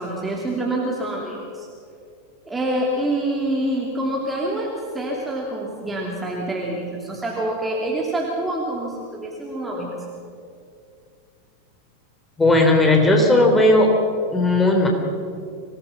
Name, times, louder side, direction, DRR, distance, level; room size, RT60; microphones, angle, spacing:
voice 1, 0.0-1.7 2.4-10.0, right 1 dB, 10° right, -2 dB, 3.1 m, -26 dB
voice 2, 12.4-13.9 14.3-14.9, left 2 dB, 10° left, 2 dB, 3.9 m, -16 dB
25.0 x 18.0 x 5.8 m, 2.4 s
figure-of-eight pair, 90°, 0 cm